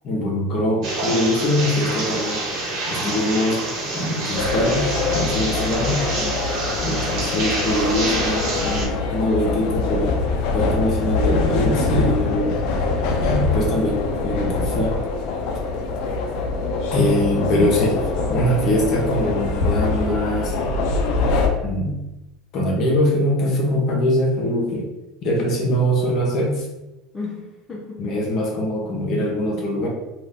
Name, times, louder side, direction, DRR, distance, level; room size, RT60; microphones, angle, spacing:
voice 1, 0.0-2.4 2.9-6.0 6.8-10.2 10.5-12.6 13.2-15.0 16.9-20.5 21.6-22.0 22.5-24.9 25.2-26.7 28.0-29.9, left 1 dB, 50° left, -1 dB, 1.0 m, -22 dB
sound 1, 0.8-8.9, right 2 dB, 60° right, 1.1 m, -27 dB
sound 2, 4.3-21.5, left 3 dB, 65° left, 0.5 m, -24 dB
voice 2, 5.6-6.5 10.6-10.7 27.1-28.3, left 3 dB, 20° left, -4 dB, 0.7 m, -34 dB
2.6 x 2.5 x 3.5 m, 0.98 s
supercardioid pair, 110°, 0 cm